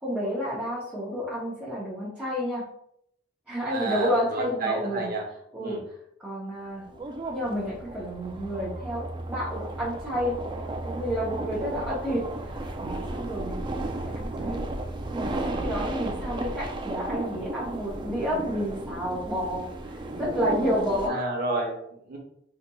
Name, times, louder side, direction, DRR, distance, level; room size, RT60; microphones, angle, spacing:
voice 1, 0.0-2.6 3.5-5.1 5.5-5.8 6.2-6.8 7.3-10.3 10.8-13.6 14.0-14.6 15.1-21.2, equal, 5° right, -9 dB, 0.7 m, -30 dB
voice 2, 3.7-5.2 5.6-5.8 21.1-22.2, right 3 dB, 55° right, 0 dB, 0.9 m, -30 dB
sound 1, 6.7-21.1, right 2 dB, 25° right, 0.3 m, -34 dB
4.1 x 2.9 x 2.2 m, 0.72 s
head